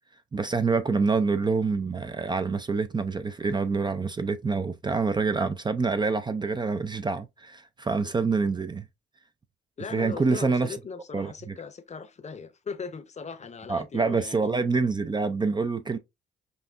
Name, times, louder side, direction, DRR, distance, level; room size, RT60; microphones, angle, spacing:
voice 1, 0.3-8.8 9.9-10.7 11.1-11.5 13.7-16.0, right 4 dB, 20° right, 0.4 m, -26 dB
voice 2, 9.8-14.5, left 5 dB, 35° left, 0.7 m, -39 dB
5.4 x 2.7 x 2.5 m
cardioid pair, 90°, 20 cm